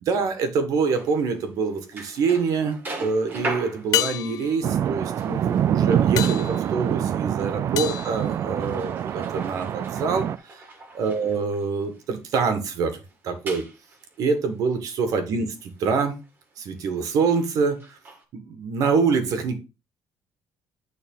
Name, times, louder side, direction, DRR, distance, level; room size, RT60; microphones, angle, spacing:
voice 1, 0.0-10.6 10.9-13.0 13.2-13.6 14.2-16.2 16.6-18.0 18.3-19.6, right 5 dB, 60° right, 8 dB, 1.8 m, -25 dB
sound 1, 1.0-12.3 12.7-12.8 13.0-18.2, right 2 dB, 30° right, 2.0 m, -41 dB
sound 2, 1.6-2.2 3.9-9.1 13.5-13.6, left 14 dB, 65° left, 0.5 m, -32 dB
sound 3, 4.6-10.4, right 9 dB, 45° right, 0.4 m, -25 dB
9.4 x 4.0 x 5.5 m, 0.29 s
cardioid pair, 165°, 7 cm